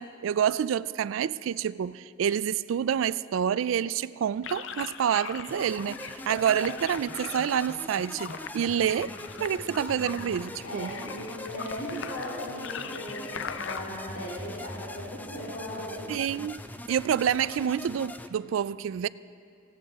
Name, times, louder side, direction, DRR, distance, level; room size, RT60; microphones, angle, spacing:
voice 1, 0.0-10.9 16.1-16.6 16.9-19.1, right 8 dB, 80° right, 0.3 m, -28 dB
sound 1, 4.4-13.8, left 6 dB, 70° left, 0.6 m, -40 dB
sound 2, 5.5-18.3, left 1 dB, 10° left, 0.5 m, -42 dB
voice 2, 10.1-16.1, equal, 90° left, 2.8 m, -38 dB
18.0 x 16.5 x 3.6 m
head